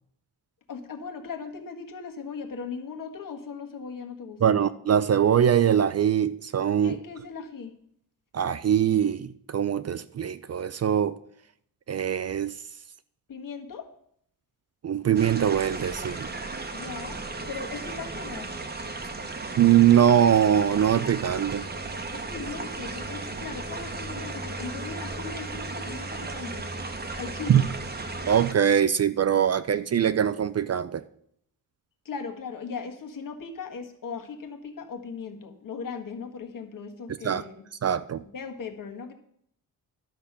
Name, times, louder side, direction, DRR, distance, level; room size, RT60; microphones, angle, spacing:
voice 1, 0.7-4.6 6.8-7.7 13.3-13.9 16.7-18.5 22.1-26.7 27.2-27.7 32.0-37.6 38.2-39.1, left 5 dB, 55° left, 3 dB, 1.5 m, -38 dB
voice 2, 4.4-7.0 8.3-11.1 11.9-12.6 14.8-16.3 19.6-21.7 27.5-27.6 28.3-31.0 37.2-37.4 37.8-38.2, right 9 dB, 45° right, 14 dB, 0.4 m, -22 dB
sound 1, 15.2-28.5, right 3 dB, 25° right, 1.0 m, -35 dB
12.0 x 6.7 x 5.8 m, 0.68 s
wide cardioid pair, 155°, 38 cm